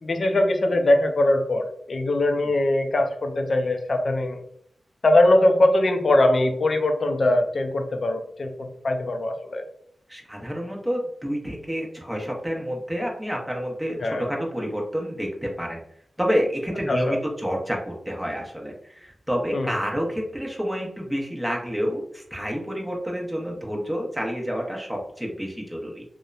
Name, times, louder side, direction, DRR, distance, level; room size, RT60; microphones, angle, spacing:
voice 1, 0.0-4.4 5.0-9.6 14.0-14.3 16.9-17.2 19.5-19.8, left 1 dB, 60° left, 5 dB, 0.4 m, -21 dB
voice 2, 10.1-15.8 16.2-26.0, equal, 5° right, -1 dB, 0.8 m, -29 dB
2.8 x 2.0 x 2.3 m, 0.68 s
cardioid pair, 50°, 0 cm